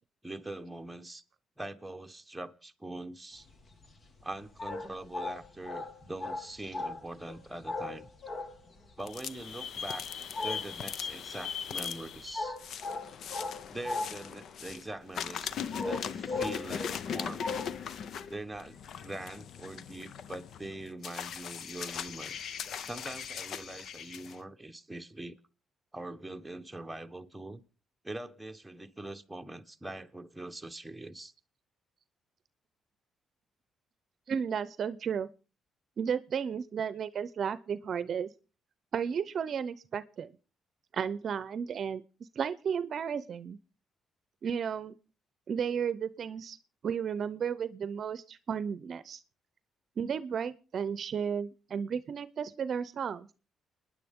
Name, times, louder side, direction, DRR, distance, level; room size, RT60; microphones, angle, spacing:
voice 1, 0.2-1.2 1.6-3.5 4.2-8.1 9.0-10.1 10.4-12.6 13.7-15.5 15.8-17.5 18.3-22.4 22.8-25.4 25.9-27.6 28.0-31.3, right 1 dB, 10° right, 1.2 m, -43 dB
sound 1, 3.4-15.0 15.3-17.2 17.4-18.3 18.5-18.9, left 3 dB, 40° left, 1.7 m, -39 dB
sound 2, 9.0-14.8 15.1-24.3, left 7 dB, 65° left, 0.7 m, -39 dB
voice 2, 34.3-35.3 36.0-38.3 38.9-40.3 40.9-42.0 42.4-43.6 44.4-44.9 45.5-46.6 46.8-49.2 50.0-53.3, right 7 dB, 55° right, 0.7 m, -33 dB
30.0 x 10.0 x 3.7 m
cardioid pair, 90°, 0 cm